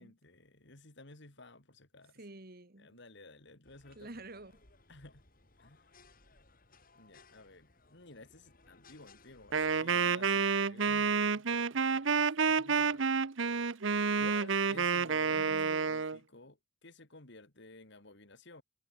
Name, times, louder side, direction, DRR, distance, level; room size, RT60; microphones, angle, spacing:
voice 1, 0.0-2.2 2.8-4.1 4.9-5.2 5.6-5.9 7.0-13.3 13.7-13.8 14.2-18.6, left 2 dB, 60° left, 3.0 m, -54 dB
voice 2, 2.1-3.0 4.0-4.6 15.3-15.9, right 2 dB, 50° right, 1.9 m, -49 dB
sound 1, 3.6-9.8, left 3 dB, 45° left, 4.8 m, -63 dB
Wind instrument woodwind instrument, 9.5-16.2, right 5 dB, 70° right, 0.8 m, -29 dB
head